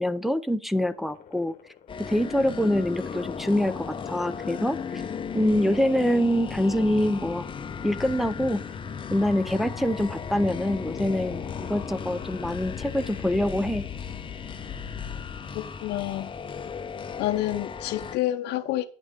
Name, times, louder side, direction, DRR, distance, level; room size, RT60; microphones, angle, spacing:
voice 1, 0.0-1.5 2.0-5.0 5.3-7.5 7.8-8.6 9.1-13.8, left 1 dB, ahead, 0.6 m, -25 dB
sound 1, 0.9-16.0, left 9 dB, 55° left, 1.2 m, -42 dB
sound 2, 1.9-18.2, left 6 dB, 30° left, 0.8 m, -36 dB
voice 2, 15.5-16.3 17.2-18.9, left 14 dB, 80° left, 0.6 m, -28 dB
9.6 x 6.3 x 5.0 m
cardioid pair, 110°, 17 cm